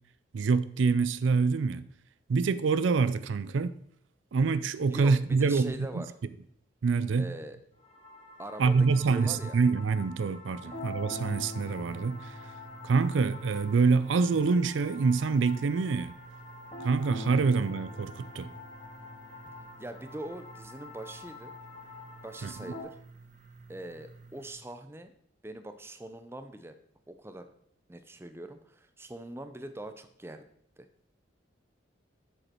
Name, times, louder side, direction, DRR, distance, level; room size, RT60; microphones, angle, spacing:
voice 1, 0.3-1.9 2.3-3.8 4.3-6.0 6.8-7.3 8.6-12.3 12.8-16.1 16.8-18.5 22.4-22.5, right 4 dB, 75° right, 0.4 m, -26 dB
voice 2, 4.9-6.1 7.2-7.6 8.4-9.6 10.6-10.8 19.8-21.5 22.2-23.0 23.7-25.1 25.4-26.8 27.1-27.5 27.9-30.4 30.8-30.9, right 1 dB, 10° right, 0.5 m, -42 dB
sound 1, 7.8-22.8, left 2 dB, 30° left, 1.6 m, -45 dB
sound 2, 10.7-24.5, right 3 dB, 40° right, 0.9 m, -53 dB
7.9 x 6.5 x 4.4 m
head